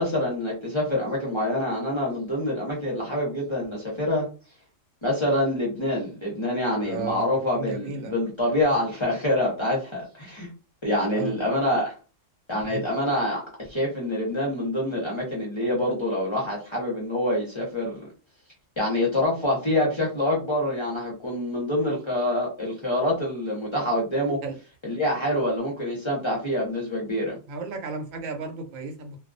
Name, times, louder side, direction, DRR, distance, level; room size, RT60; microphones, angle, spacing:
voice 1, 0.0-4.3 5.0-10.5 10.8-11.9 12.5-18.1 18.8-24.4 24.8-27.4, left 1 dB, 30° left, -4 dB, 0.6 m, -26 dB
voice 2, 6.8-8.1 11.1-11.4 12.7-12.8 24.4-24.5 27.5-29.2, right 4 dB, 85° right, 5 dB, 1.0 m, -34 dB
2.3 x 2.2 x 2.5 m, 0.33 s
omnidirectional pair, 1.4 m